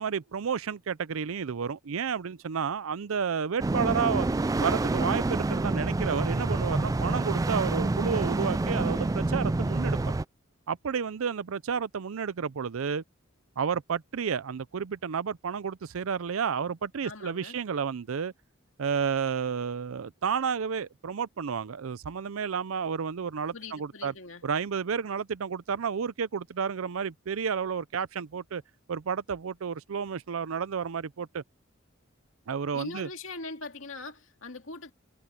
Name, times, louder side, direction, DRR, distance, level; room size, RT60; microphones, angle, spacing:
voice 1, 0.0-4.3 4.6-10.0 10.7-13.0 13.6-18.3 18.8-24.1 24.4-28.6 28.9-31.4 32.5-33.1, right 6 dB, 80° right, 0.5 m, -31 dB
sound 1, 3.6-10.2, right 2 dB, 15° right, 0.3 m, -27 dB
voice 2, 17.0-17.6 23.5-24.5 32.7-34.9, left 3 dB, 70° left, 2.4 m, -41 dB
head